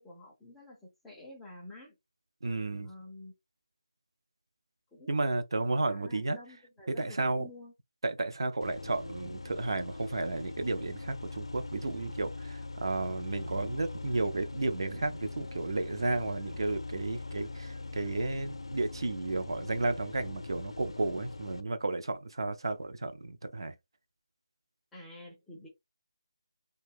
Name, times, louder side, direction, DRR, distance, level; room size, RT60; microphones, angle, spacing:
voice 1, 0.0-2.0 2.8-3.3 4.9-5.4 5.9-7.7 24.9-25.7, left 2 dB, 5° left, 0.4 m, -49 dB
voice 2, 2.4-2.9 5.1-6.4 6.9-7.5 8.0-23.7, right 2 dB, 60° right, 0.5 m, -33 dB
sound 1, 8.6-21.6, left 3 dB, 80° left, 0.5 m, -42 dB
2.6 x 2.3 x 3.4 m
figure-of-eight pair, 170°, 3 cm